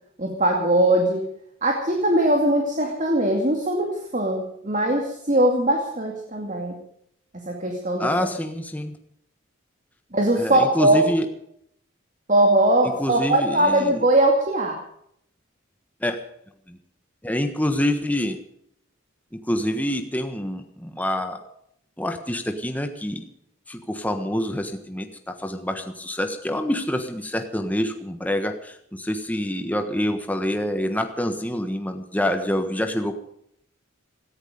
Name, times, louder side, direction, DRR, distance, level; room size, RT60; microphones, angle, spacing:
voice 1, 0.2-1.2 1.6-6.7 7.3-8.1 10.1-11.0 12.3-14.8, right 1 dB, 35° right, 1 dB, 2.5 m, -21 dB
voice 2, 8.0-8.9 10.3-11.3 13.0-14.0 16.0-16.2 16.7-16.8 17.2-18.4 19.3-21.4 22.0-23.2 23.7-33.1, left 1 dB, 10° left, 6 dB, 1.3 m, -26 dB
17.5 x 14.5 x 5.1 m, 0.71 s
head